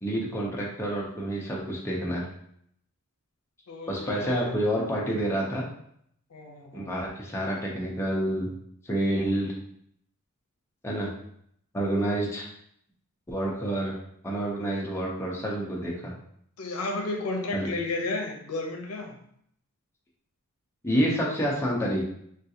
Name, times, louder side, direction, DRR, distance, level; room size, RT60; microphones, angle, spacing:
voice 1, 0.0-2.3 3.9-5.6 6.7-8.5 8.8-9.5 10.8-11.1 11.7-12.5 13.3-13.9 14.2-16.1 17.5-17.7 20.8-22.0, right 1 dB, 10° left, -4 dB, 0.5 m, -28 dB
voice 2, 3.7-4.5 6.3-6.9 16.6-19.2, left 2 dB, 80° left, 2 dB, 0.6 m, -32 dB
3.6 x 2.3 x 2.7 m, 0.69 s
head